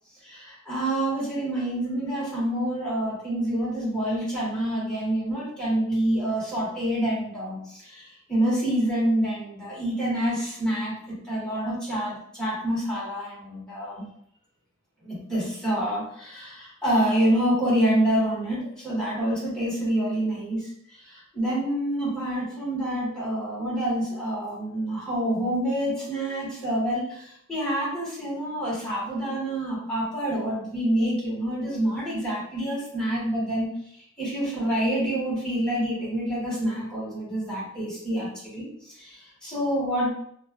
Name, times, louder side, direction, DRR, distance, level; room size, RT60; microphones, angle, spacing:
voice 1, 0.2-14.0 15.0-33.7 34.2-38.7 39.0-40.1, right 1 dB, 5° left, -9 dB, 1.2 m, -27 dB
3.0 x 2.3 x 2.2 m, 0.69 s
head